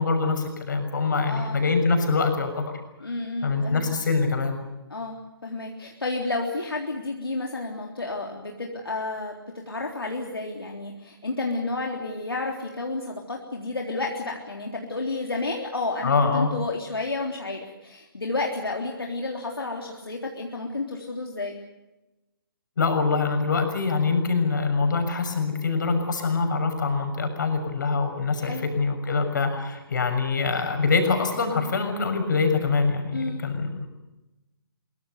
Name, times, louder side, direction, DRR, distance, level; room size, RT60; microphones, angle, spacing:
voice 1, 0.0-2.7 3.4-4.6 16.0-16.5 22.8-33.9, left 4 dB, 50° left, 6 dB, 6.5 m, -24 dB
voice 2, 1.2-1.7 3.0-3.9 4.9-21.6 28.4-28.7 33.1-33.4, left 3 dB, 70° left, 1 dB, 3.6 m, -31 dB
24.0 x 24.0 x 6.8 m, 1.0 s
figure-of-eight pair, 135°, 13 cm